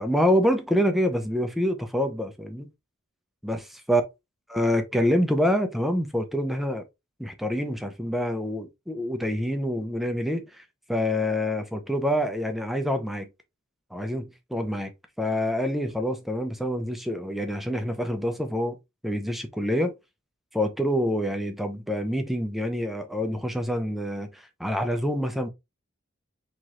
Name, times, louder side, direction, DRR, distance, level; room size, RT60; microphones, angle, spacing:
voice 1, 0.0-2.7 3.4-4.0 4.5-6.8 7.2-10.6 10.9-13.3 13.9-14.9 15.2-18.8 19.0-19.9 20.5-25.5, equal, ahead, 0.5 m, -26 dB
4.5 x 3.0 x 2.5 m
head